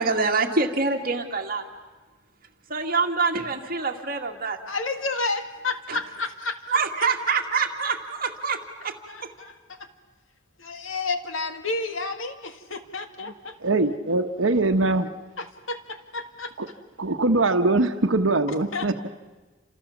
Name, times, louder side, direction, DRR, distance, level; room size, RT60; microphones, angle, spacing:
voice 1, 0.0-1.6 2.7-4.6 5.9-6.0 6.7-9.0, right 4 dB, 45° right, 4 dB, 2.2 m, -25 dB
voice 2, 4.7-6.8 9.1-9.8 10.6-13.5 15.4-16.5 18.7-18.9, left 3 dB, 90° left, 8 dB, 2.0 m, -31 dB
voice 3, 13.6-15.1 16.6-16.7 17.0-19.1, right 2 dB, 85° right, 8 dB, 1.2 m, -22 dB
29.5 x 27.0 x 7.2 m, 1.3 s
head